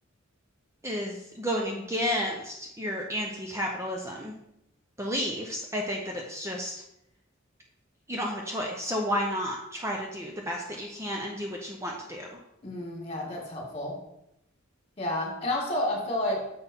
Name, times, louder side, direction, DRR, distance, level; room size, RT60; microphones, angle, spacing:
voice 1, 0.8-4.3 5.0-6.7 8.1-12.3, equal, 15° right, 0 dB, 0.7 m, -32 dB
voice 2, 12.6-14.0 15.0-16.4, left 1 dB, 30° left, -1 dB, 2.1 m, -30 dB
6.9 x 4.3 x 5.3 m, 0.81 s
head